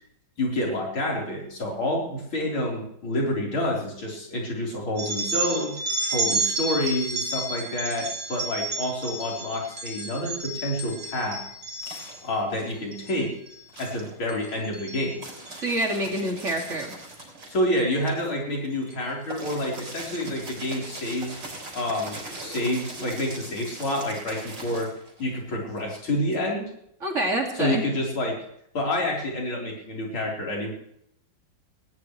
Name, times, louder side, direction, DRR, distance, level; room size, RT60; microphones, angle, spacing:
voice 1, 0.4-5.8 6.1-11.4 12.2-13.4 13.8-15.2 17.5-21.4 21.7-26.7 27.5-28.4 28.7-30.7, left 1 dB, 80° left, -2 dB, 5.0 m, -28 dB
sound 1, 5.0-12.3 12.8-13.1 13.5-13.9 14.3-15.6 16.6-16.8 17.8-17.9 18.9-19.0 19.4-19.5 20.0-20.3, right 2 dB, 85° right, 3.5 m, -31 dB
sound 2, 10.9-13.3 13.6-26.4, right 2 dB, 60° right, 5.0 m, -41 dB
voice 2, 15.6-16.9 27.0-27.8, right 1 dB, 35° right, 1 dB, 2.7 m, -27 dB
19.5 x 18.5 x 3.2 m, 0.74 s
omnidirectional pair, 2.2 m